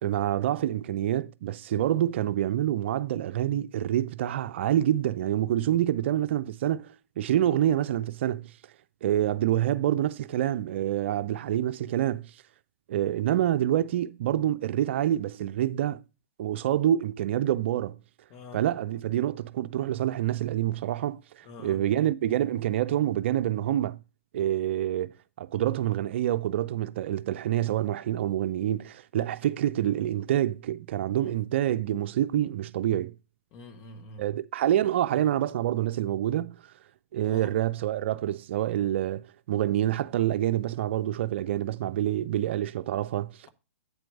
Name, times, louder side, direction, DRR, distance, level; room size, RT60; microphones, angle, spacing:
voice 1, 0.0-8.5 9.0-12.2 12.9-16.0 16.4-18.0 18.5-24.0 24.3-33.1 34.2-36.6 37.1-43.3, right 12 dB, 55° right, 0.5 m, -27 dB
voice 2, 18.3-18.6 21.4-21.8 31.2-31.3 33.5-34.2 37.2-37.5, left 2 dB, 35° left, 1.3 m, -45 dB
8.5 x 4.5 x 5.2 m
hypercardioid pair, 130°, 7 cm